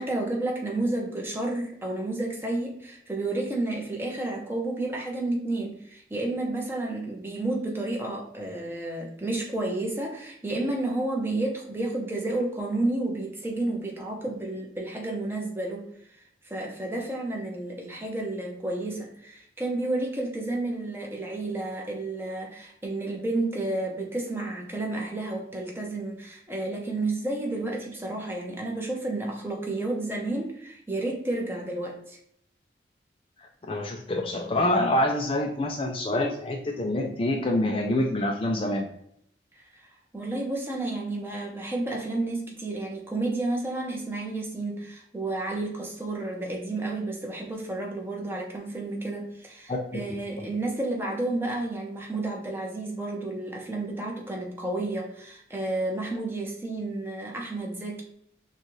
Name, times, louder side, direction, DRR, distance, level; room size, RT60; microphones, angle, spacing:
voice 1, 0.0-15.9 16.1-32.2 39.5-39.9 40.1-58.0, right 2 dB, 15° right, -1 dB, 0.9 m, -31 dB
voice 2, 33.7-38.9 49.7-49.8, left 1 dB, 30° left, 2 dB, 0.4 m, -26 dB
6.4 x 2.4 x 3.2 m, 0.70 s
head